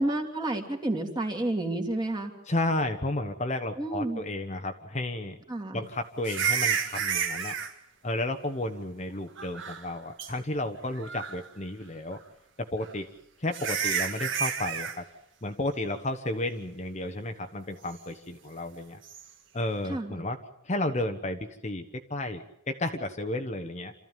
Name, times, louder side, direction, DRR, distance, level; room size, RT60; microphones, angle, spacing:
voice 1, 0.0-2.3 3.8-4.2 5.5-5.8 19.9-20.2, right 1 dB, 20° right, 3 dB, 2.7 m, -30 dB
voice 2, 2.5-5.4 5.7-7.5 8.0-12.2 12.6-13.1 13.4-15.1 15.4-19.0 19.5-20.4 20.6-23.9, left 1 dB, 35° left, 6 dB, 1.2 m, -32 dB
sound 1, 6.2-7.7 9.4-9.9 10.2-10.3 11.0-11.5 12.9-13.0 13.5-15.0 19.0-19.2, right 7 dB, 60° right, 2.1 m, -30 dB
27.0 x 14.0 x 9.1 m, 0.78 s
head